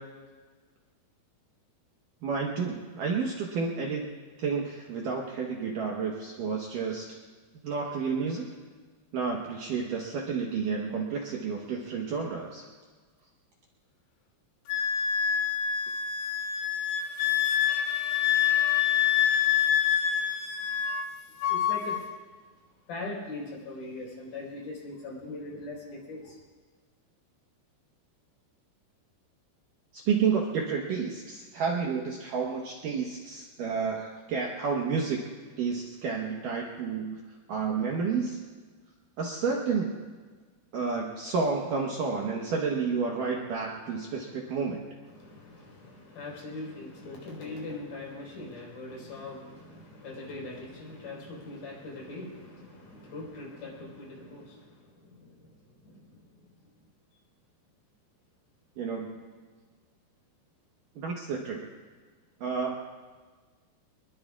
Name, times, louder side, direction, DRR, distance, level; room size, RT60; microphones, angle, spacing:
voice 1, 2.2-4.1 4.4-7.2 7.6-8.5 9.1-12.7 29.9-35.2 35.6-37.2 37.5-38.4 39.2-39.9 40.7-44.8 58.8-59.2 61.0-61.7 62.4-62.8, right 5 dB, 65° right, -1 dB, 2.2 m, -30 dB
Wind instrument woodwind instrument, 14.7-21.1 21.4-22.0, left 9 dB, 90° left, 3.4 m, -26 dB
voice 2, 21.5-22.0 22.9-26.4 44.3-44.6 45.1-54.7 55.0-55.3 55.8-56.0, left 2 dB, 50° left, -3 dB, 5.8 m, -41 dB
25.0 x 21.5 x 2.4 m, 1.4 s
omnidirectional pair, 5.0 m